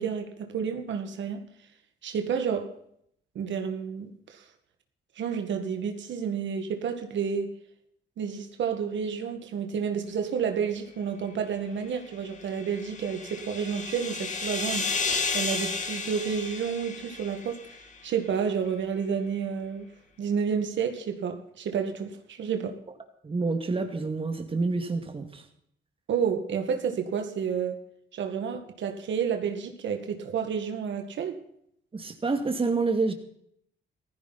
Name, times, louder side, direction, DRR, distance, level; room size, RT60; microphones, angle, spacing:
voice 1, 0.0-1.4 2.0-2.7 3.4-4.4 5.2-7.5 8.2-14.9 15.3-17.6 18.0-19.9 20.2-22.8 26.1-27.8 28.1-31.4, right 7 dB, 70° right, 2.0 m, -30 dB
sound 1, 12.3-17.9, left 4 dB, 40° left, 2.8 m, -32 dB
voice 2, 23.2-25.4 31.9-33.1, right 3 dB, 25° right, 2.3 m, -28 dB
15.5 x 14.5 x 4.2 m
cardioid pair, 90°, 20 cm